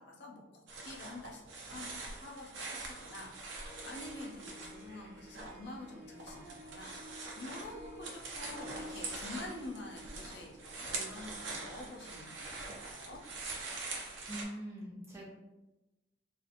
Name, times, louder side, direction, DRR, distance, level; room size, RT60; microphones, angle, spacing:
voice 1, 0.0-13.2, left 2 dB, 60° left, 0 dB, 0.5 m, -48 dB
sound 1, 0.7-5.5 5.8-14.4, right 3 dB, 75° right, 0.5 m, -44 dB
Harp, 3.5-13.0, left 1 dB, 55° right, 1.0 m, -53 dB
voice 2, 14.3-15.2, equal, 15° right, -5 dB, 0.6 m, -43 dB
2.7 x 2.4 x 2.5 m, 1.0 s
head